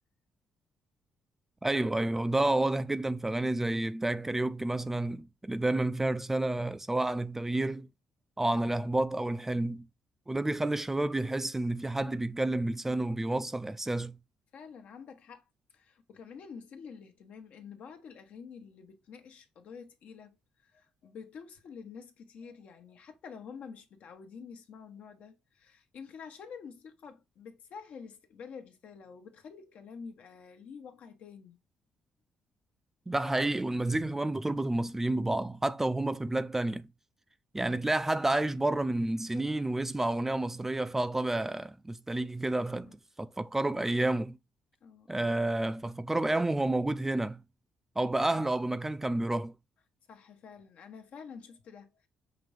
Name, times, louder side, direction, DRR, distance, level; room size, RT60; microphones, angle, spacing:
voice 1, 1.6-7.9 8.4-9.8 10.3-14.2 33.1-36.9 37.5-42.9 43.2-44.4 45.1-47.4 48.0-49.5, right 2 dB, 15° right, 0.4 m, -30 dB
voice 2, 14.5-15.4 15.7-31.6 42.8-43.0 44.8-45.3 50.1-52.1, left 6 dB, 65° left, 1.0 m, -48 dB
5.9 x 2.6 x 3.3 m
cardioid pair, 90°, 3 cm